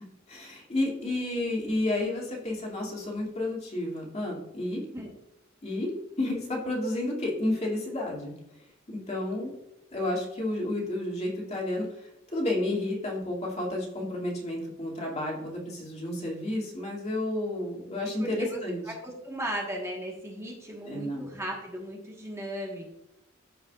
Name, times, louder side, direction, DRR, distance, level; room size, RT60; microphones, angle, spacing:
voice 1, 0.3-4.8 5.6-5.9 6.2-8.3 8.9-9.5 9.9-11.8 12.3-18.8 20.8-21.3, left 1 dB, 35° left, -3 dB, 2.5 m, -31 dB
voice 2, 4.7-5.1 18.0-22.9, right 1 dB, 15° right, -2 dB, 1.4 m, -37 dB
13.5 x 5.4 x 2.4 m, 0.86 s
head